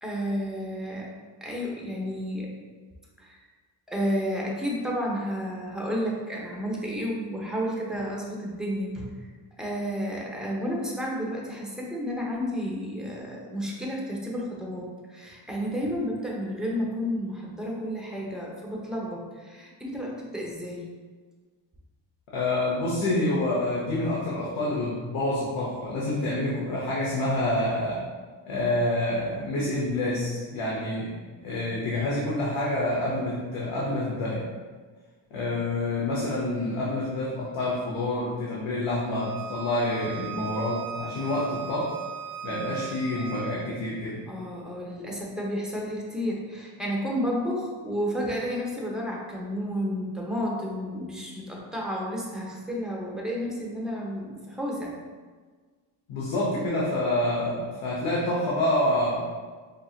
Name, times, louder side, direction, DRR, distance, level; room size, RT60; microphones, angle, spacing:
voice 1, 0.0-1.1 1.4-2.5 3.2-3.4 3.9-9.3 9.6-20.9 44.3-54.9, equal, ahead, -4 dB, 0.8 m, -31 dB
voice 2, 22.3-28.1 28.5-34.5 35.3-42.0 42.4-44.3 56.1-59.2, left 1 dB, 85° left, -5 dB, 0.8 m, -27 dB
Bowed string instrument, 39.1-43.6, right 7 dB, 50° right, 0.6 m, -39 dB
5.0 x 2.7 x 2.4 m, 1.5 s
cardioid pair, 95°, 48 cm